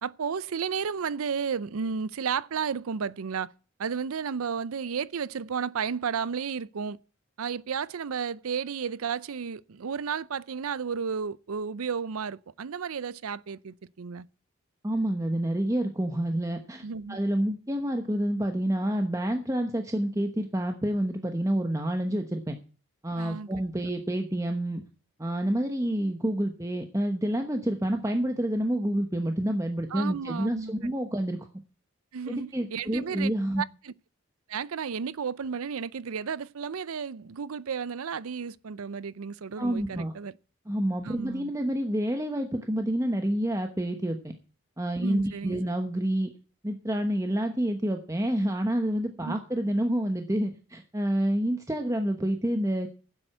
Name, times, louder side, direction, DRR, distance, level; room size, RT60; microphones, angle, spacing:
voice 1, 0.0-3.5 3.8-7.0 7.4-14.3 16.8-17.2 23.2-23.5 29.9-30.9 32.1-33.3 33.6-33.9 34.5-40.3 41.0-41.5 45.0-45.6 49.2-49.4, right 6 dB, 85° right, 0.5 m, -33 dB
voice 2, 14.8-22.6 23.0-24.8 25.2-31.5 32.3-33.6 39.6-40.1 40.7-44.2 44.8-46.3 46.6-52.9, right 1 dB, 15° right, 0.9 m, -28 dB
10.5 x 7.8 x 7.8 m
head